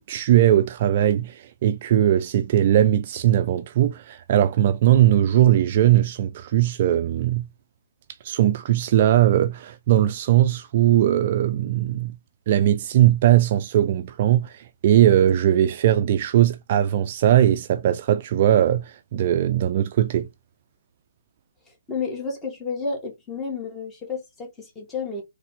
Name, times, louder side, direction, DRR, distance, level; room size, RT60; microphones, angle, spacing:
voice 1, 0.0-7.5 8.2-12.2 12.5-20.3, right 12 dB, 40° right, 0.5 m, -19 dB
voice 2, 21.7-25.2, left 4 dB, 10° left, 2.0 m, -31 dB
4.0 x 3.3 x 3.6 m
hypercardioid pair, 150°, 0 cm